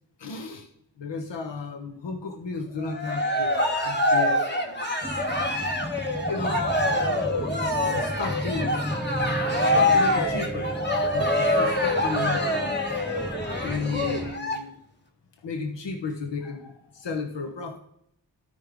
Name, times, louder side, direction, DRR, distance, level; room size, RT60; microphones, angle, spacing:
voice 1, 0.2-0.7 1.0-5.1 6.3-6.6 6.9-8.8 9.6-10.7 11.1-12.8 13.6-14.7 15.4-17.8, left 4 dB, 70° left, 5 dB, 1.1 m, -34 dB
Cheering, 2.8-14.5, left 1 dB, 25° left, 1.7 m, -25 dB
sound 1, 5.0-14.3, right 1 dB, ahead, 0.6 m, -34 dB
12.5 x 5.4 x 3.6 m, 0.73 s
cardioid pair, 50°, 44 cm